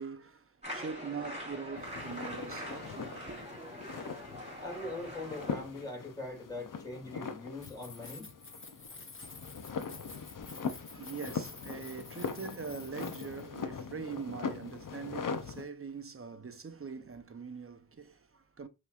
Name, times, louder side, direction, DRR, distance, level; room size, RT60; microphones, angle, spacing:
voice 1, 0.0-3.5 10.4-18.7, right 5 dB, 35° right, 0.7 m, -43 dB
sound 1, 0.6-5.6, equal, 15° right, 2.6 m, -43 dB
sound 2, 1.8-15.6, left 5 dB, 60° left, 0.7 m, -41 dB
voice 2, 4.6-8.3, left 2 dB, 10° left, 2.5 m, -41 dB
Keys jangling, 7.6-13.6, left 3 dB, 35° left, 0.9 m, -50 dB
5.3 x 3.1 x 2.4 m
cardioid pair, 40°, 37 cm